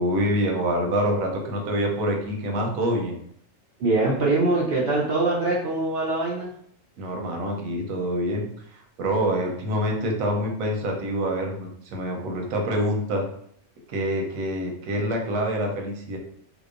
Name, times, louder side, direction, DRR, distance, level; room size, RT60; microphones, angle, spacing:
voice 1, 0.0-3.2 7.0-13.2 13.9-16.2, equal, 85° right, 1 dB, 1.0 m, -26 dB
voice 2, 3.8-6.5, right 2 dB, 65° right, -5 dB, 0.6 m, -23 dB
2.8 x 2.0 x 2.4 m, 0.66 s
omnidirectional pair, 1.4 m